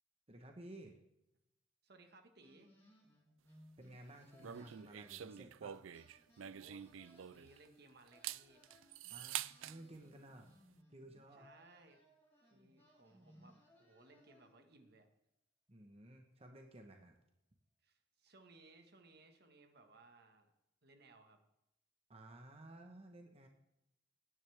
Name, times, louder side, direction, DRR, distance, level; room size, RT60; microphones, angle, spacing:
voice 1, 0.3-1.0 3.8-5.8 9.0-10.5 10.9-11.5 15.7-17.1 22.1-23.5, right 1 dB, 30° right, 3 dB, 1.2 m, -55 dB
voice 2, 1.8-2.7 6.4-8.6 11.3-12.0 12.5-15.1 17.8-20.5 20.8-21.4, right 2 dB, 55° right, 6 dB, 1.7 m, -63 dB
sound 1, 2.4-5.7 5.9-9.0 9.5-14.8, equal, 10° left, 3.8 m, -67 dB
sound 2, 4.4-7.7 8.1-9.8, right 11 dB, 85° right, 0.4 m, -46 dB
17.5 x 10.0 x 3.5 m, 0.86 s
head